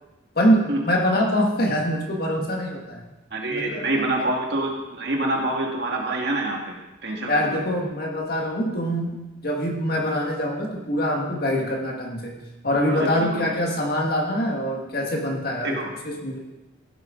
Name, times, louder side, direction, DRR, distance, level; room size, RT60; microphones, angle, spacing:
voice 1, 0.4-3.0 3.5-4.0 7.3-12.4 12.6-15.8 16.0-16.4, equal, 50° left, 0 dB, 1.9 m, -24 dB
voice 2, 3.3-7.6 12.9-13.5 15.6-15.9, right 2 dB, 55° right, 0 dB, 2.0 m, -26 dB
16.0 x 7.8 x 3.8 m, 1.0 s
head